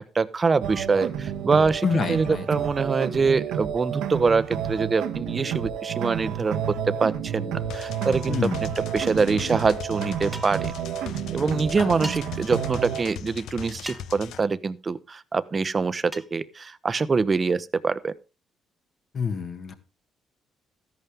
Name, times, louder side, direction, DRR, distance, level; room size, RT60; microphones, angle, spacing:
voice 1, 0.0-6.7 7.0-10.7 11.3-18.1, right 4 dB, 35° right, 16 dB, 0.8 m, -25 dB
sound 1, 0.6-13.0, right 9 dB, 80° right, 1.3 m, -30 dB
voice 2, 1.8-2.5 8.3-8.7 11.8-12.0 19.1-19.7, left 5 dB, 50° left, 8 dB, 1.7 m, -27 dB
sound 2, 7.7-14.4, left 9 dB, 75° left, 0.7 m, -39 dB
sound 3, 10.3-10.7 12.0-12.2 13.9-14.2 16.1-16.3, right 1 dB, 10° right, 1.2 m, -37 dB
13.5 x 11.0 x 3.5 m, 0.29 s
supercardioid pair, 75°, 0 cm